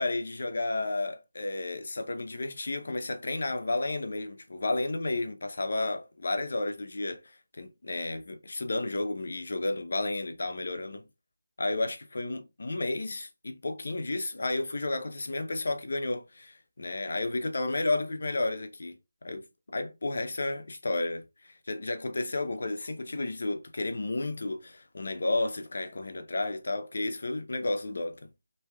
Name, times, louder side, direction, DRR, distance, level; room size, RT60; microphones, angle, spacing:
voice 1, 0.0-11.0 11.6-19.0 19.2-28.2, left 2 dB, 60° left, 0.6 m, -32 dB
3.1 x 2.7 x 2.2 m
figure-of-eight pair, 170°, 0 cm